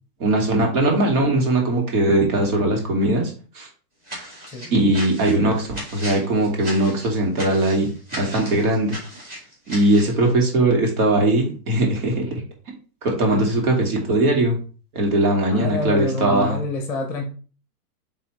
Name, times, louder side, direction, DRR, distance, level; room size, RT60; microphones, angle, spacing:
voice 1, 0.2-3.7 4.7-9.0 9.7-12.3 13.0-14.6 14.9-16.6, right 1 dB, 65° right, 1 dB, 2.5 m, -20 dB
sound 1, 4.0-10.2, equal, 20° right, 2.5 m, -36 dB
voice 2, 15.5-17.3, left 2 dB, 5° left, 3 dB, 0.9 m, -27 dB
8.3 x 3.5 x 3.2 m, 0.39 s
supercardioid pair, 155°, 47 cm